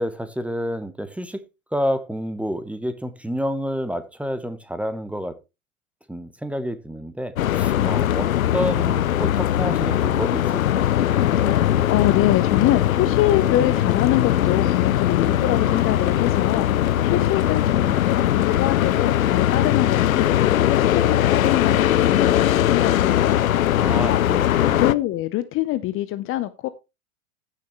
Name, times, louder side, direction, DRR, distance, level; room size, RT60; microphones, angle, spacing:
voice 1, 0.0-1.4 1.7-5.4 6.1-10.8 23.8-24.9, equal, 5° right, 1.0 m, -29 dB
sound 1, 7.4-24.9, left 12 dB, 70° left, 0.7 m, -20 dB
voice 2, 7.8-8.1 11.4-23.4 23.9-24.2 24.7-26.7, left 14 dB, 30° left, 0.7 m, -25 dB
sound 2, 11.3-13.0 15.3-17.2 17.6-17.8 20.7-21.9, left 1 dB, 15° left, 4.5 m, -41 dB
15.0 x 6.6 x 3.1 m
figure-of-eight pair, 90°, 42 cm